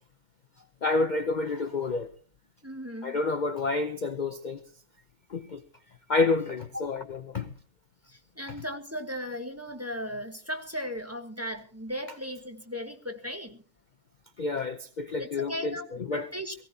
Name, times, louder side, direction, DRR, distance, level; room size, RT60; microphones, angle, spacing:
voice 1, 0.8-2.1 3.0-4.6 5.3-5.6 6.1-7.0 7.3-7.5 14.4-15.8 16.1-16.3, left 3 dB, 50° left, 0.5 m, -28 dB
voice 2, 2.6-3.2 6.7-6.9 8.1-13.6 15.2-16.5, equal, 10° right, 1.3 m, -37 dB
22.5 x 16.0 x 2.8 m
omnidirectional pair, 1.9 m